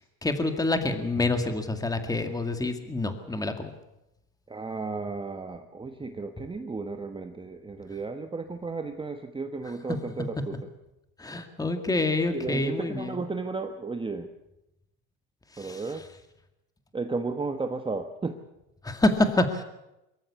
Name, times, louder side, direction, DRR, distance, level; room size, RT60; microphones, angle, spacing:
voice 1, 0.2-3.7 11.2-13.1 15.6-15.8 18.8-19.6, left 2 dB, 10° left, 7 dB, 2.1 m, -27 dB
voice 2, 4.5-10.7 12.2-14.3 15.6-16.1 16.9-18.4, right 3 dB, 15° right, 6 dB, 1.2 m, -34 dB
23.5 x 14.5 x 8.4 m, 0.92 s
supercardioid pair, 120°, 38 cm